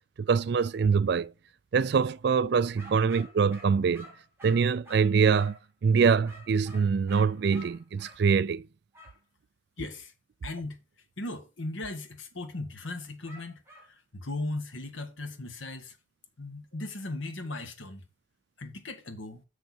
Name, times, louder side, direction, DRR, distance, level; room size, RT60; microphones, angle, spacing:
voice 1, 0.2-1.3 1.7-4.1 4.4-8.7, right 5 dB, 55° right, 0.3 m, -24 dB
sound 1, 2.8-5.7 6.3-8.2 8.9-9.2 13.3-13.9, left 1 dB, 10° right, 2.5 m, -50 dB
voice 2, 9.8-10.1 10.4-10.8 11.2-16.0 16.4-18.0 18.6-19.4, left 2 dB, 75° left, 1.5 m, -37 dB
6.6 x 6.5 x 4.4 m
head